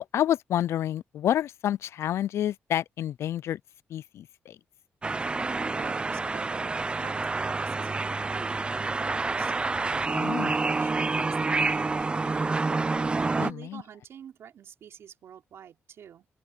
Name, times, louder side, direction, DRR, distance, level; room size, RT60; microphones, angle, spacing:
voice 1, 0.0-3.6 3.9-4.6 10.1-10.5 13.4-13.8, left 11 dB, 80° left, 0.4 m, -29 dB
sound 1, 5.0-13.5, right 3 dB, 20° right, 0.5 m, -28 dB
voice 2, 5.7-9.5 10.0-12.7 13.4-16.3, right 9 dB, 75° right, 5.2 m, -48 dB
open air
cardioid pair, 115°, 5 cm